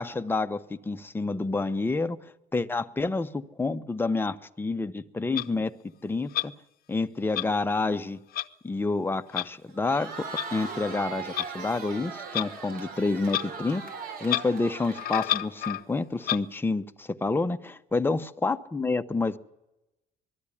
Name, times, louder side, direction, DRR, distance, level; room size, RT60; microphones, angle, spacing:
voice 1, 0.0-2.2 2.5-5.7 6.0-6.5 6.9-8.2 8.6-13.8 14.2-19.4, left 3 dB, 10° left, 8 dB, 0.8 m, -28 dB
Clock, 5.4-5.5 6.3-6.5 7.3-7.5 8.3-8.5 9.3-9.5 10.4-10.5 11.3-11.5 12.3-12.5 13.3-13.5 13.7-13.8 14.2-14.5 14.9-15.8 16.2-16.4, left 14 dB, 60° left, 0.7 m, -29 dB
Crowd, 9.7-15.7, right 4 dB, 60° right, 3.5 m, -39 dB
21.5 x 13.0 x 9.9 m, 0.96 s
cardioid pair, 110°, 17 cm